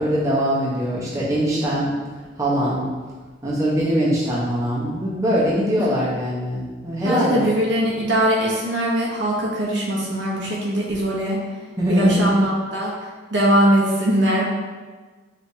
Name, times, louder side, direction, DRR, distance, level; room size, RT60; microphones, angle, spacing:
voice 1, 0.0-2.0 2.4-2.9 3.4-7.4 11.8-12.3, equal, 20° right, -8 dB, 1.0 m, -22 dB
voice 2, 7.0-11.4 11.9-12.9 13.3-14.5, equal, 75° right, -4 dB, 0.9 m, -21 dB
5.1 x 3.3 x 2.8 m, 1.4 s
head